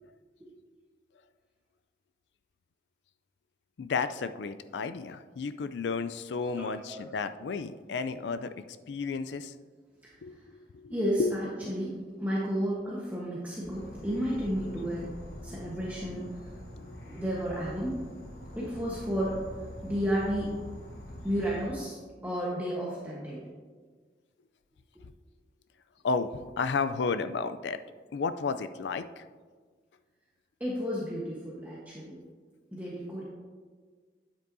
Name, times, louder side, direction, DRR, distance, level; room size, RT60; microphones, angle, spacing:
voice 1, 3.8-9.5 10.2-10.3 10.7-11.3 11.6-11.7 16.7-16.9 25.0-25.1 26.0-27.8 28.1-29.2, left 4 dB, 85° left, 11 dB, 0.4 m, -32 dB
voice 2, 6.6-7.0 10.0-10.4 10.9-11.9 12.2-15.1 15.4-16.5 17.0-18.0 18.6-19.5 19.8-20.5 21.2-22.0 22.2-23.4 30.6-32.2 32.7-33.2, equal, 10° right, -6 dB, 1.1 m, -32 dB
Insect / Frog, 13.6-21.7, left 1 dB, 55° left, 1.4 m, -44 dB
9.4 x 8.2 x 2.7 m, 1.5 s
head